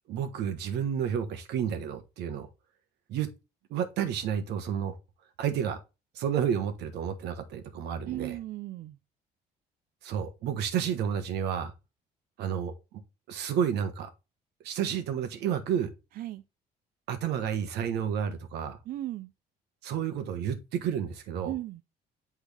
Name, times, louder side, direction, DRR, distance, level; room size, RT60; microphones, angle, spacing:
voice 1, 0.1-2.5 3.1-3.3 3.7-4.9 5.4-5.8 6.1-8.3 10.0-11.7 12.4-12.7 13.3-14.1 14.6-15.9 17.1-18.8 19.8-21.5, right 8 dB, 80° right, 1.1 m, -30 dB
voice 2, 8.0-9.0 16.1-16.4 18.8-19.3 21.4-21.8, right 14 dB, 60° right, 0.4 m, -36 dB
8.1 x 3.6 x 3.4 m
cardioid pair, 110°, 17 cm